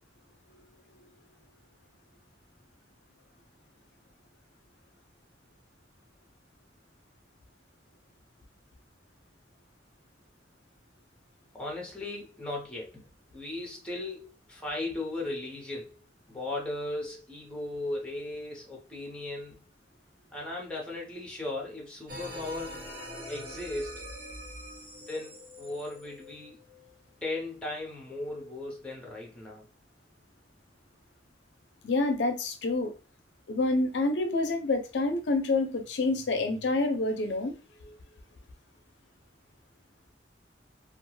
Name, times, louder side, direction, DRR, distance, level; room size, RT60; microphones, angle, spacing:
voice 1, 11.5-13.1 13.3-16.0 16.3-19.6 20.3-22.8 23.3-24.1 25.1-26.6 27.2-29.7, left 2 dB, 5° left, 0.8 m, -37 dB
sound 1, 22.1-27.0, equal, 55° right, 1.2 m, -43 dB
voice 2, 31.8-32.9 33.5-37.6, left 2 dB, 80° left, 0.5 m, -27 dB
2.3 x 2.2 x 3.1 m
head